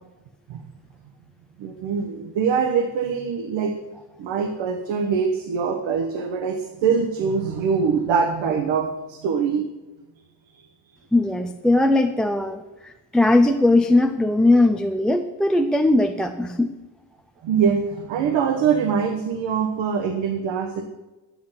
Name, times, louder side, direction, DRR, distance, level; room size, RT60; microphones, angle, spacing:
voice 1, 1.6-3.7 4.2-9.6 17.4-20.9, right 6 dB, 85° right, 6 dB, 1.2 m, -23 dB
voice 2, 11.1-16.7, left 2 dB, ahead, 6 dB, 0.3 m, -19 dB
11.5 x 8.7 x 5.7 m, 1.1 s
cardioid pair, 135°, 44 cm